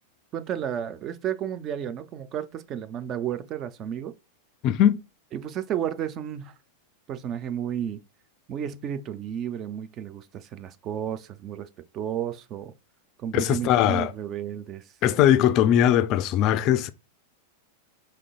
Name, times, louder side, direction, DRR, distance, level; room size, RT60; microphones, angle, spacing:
voice 1, 0.3-4.1 5.3-6.5 7.1-8.0 8.5-11.7 11.9-12.7 13.2-14.8, right 9 dB, 35° right, 0.4 m, -32 dB
voice 2, 4.6-5.0 13.3-14.1 15.0-16.9, left 11 dB, 40° left, 0.3 m, -20 dB
5.1 x 3.2 x 2.3 m
figure-of-eight pair, 90°, 0 cm